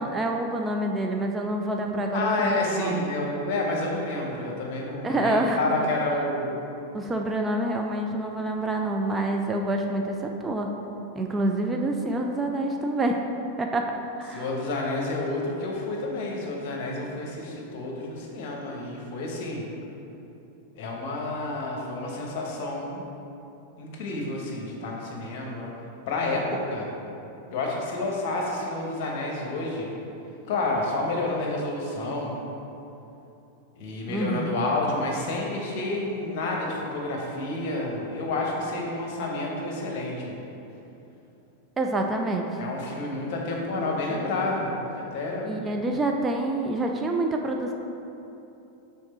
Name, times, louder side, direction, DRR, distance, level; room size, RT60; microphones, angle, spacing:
voice 1, 0.0-3.1 5.0-5.6 6.9-10.7 11.1-13.2 13.6-13.9 14.2-14.5 34.1-34.6 41.8-42.6 45.4-47.7, right 2 dB, 15° right, 2 dB, 0.4 m, -27 dB
voice 2, 2.1-6.5 14.3-19.7 20.7-23.0 23.8-25.7 26.1-26.9 27.5-29.9 30.5-32.4 33.8-40.4 42.6-45.6, left 2 dB, 50° left, -1 dB, 1.0 m, -29 dB
6.4 x 3.7 x 4.3 m, 2.9 s
figure-of-eight pair, 90°, 0 cm